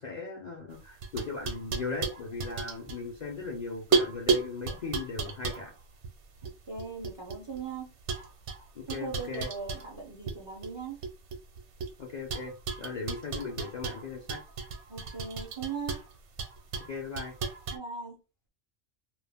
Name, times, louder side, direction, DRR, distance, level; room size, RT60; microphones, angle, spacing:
voice 1, 0.0-5.7 8.7-9.5 12.0-14.4 16.9-17.3, left 4 dB, 50° left, -1 dB, 0.5 m, -38 dB
sound 1, 0.7-3.5 3.9-7.6 8.1-10.4 10.6-11.9 12.3-17.8, right 5 dB, 70° right, 0.9 m, -33 dB
voice 2, 6.4-7.9 8.9-11.0 14.9-16.0 17.7-18.2, right 5 dB, 40° right, -1 dB, 0.4 m, -39 dB
2.4 x 2.1 x 3.3 m, 0.30 s
omnidirectional pair, 1.3 m